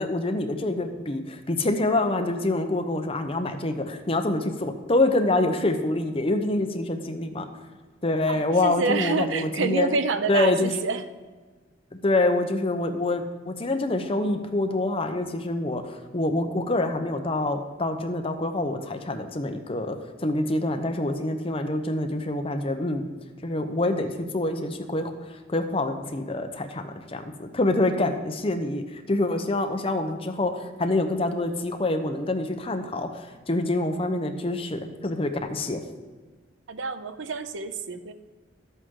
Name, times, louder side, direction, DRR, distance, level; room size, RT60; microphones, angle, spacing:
voice 1, 0.0-7.5 8.0-9.9 10.3-10.7 11.9-23.0 23.4-25.1 25.5-35.8, left 2 dB, 30° left, 6 dB, 0.8 m, -26 dB
voice 2, 8.3-11.0 36.7-38.1, right 4 dB, 85° right, 11 dB, 0.6 m, -28 dB
12.5 x 8.2 x 3.8 m, 1.3 s
head